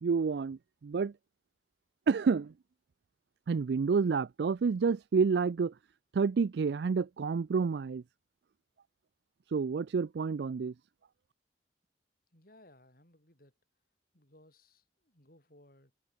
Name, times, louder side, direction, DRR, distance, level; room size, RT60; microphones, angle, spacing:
voice 1, 0.0-1.1 2.1-2.5 3.5-5.7 6.1-8.0 9.5-10.7, right 5 dB, 75° right, 0.4 m, -29 dB
voice 2, 12.3-13.5 14.1-16.0, left 1 dB, 55° left, 6.7 m, -61 dB
head